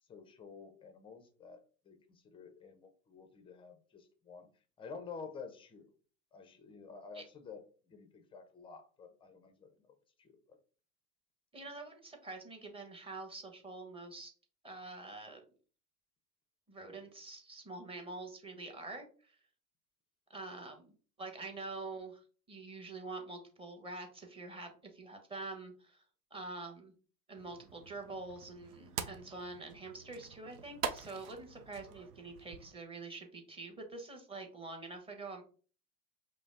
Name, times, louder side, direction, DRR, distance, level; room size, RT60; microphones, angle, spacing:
voice 1, 0.1-1.6 1.8-4.5 4.8-5.9 6.3-10.6, left 5 dB, 10° left, 7 dB, 0.4 m, -51 dB
voice 2, 11.5-14.3 14.6-15.4 16.7-19.4 20.3-22.2 22.5-26.0 26.3-26.9 27.3-35.4, right 3 dB, 10° right, 3 dB, 1.0 m, -46 dB
sound 1, 27.4-32.8, right 7 dB, 80° right, 0.7 m, -45 dB
5.0 x 2.0 x 3.6 m, 0.39 s
hypercardioid pair, 100°, 46 cm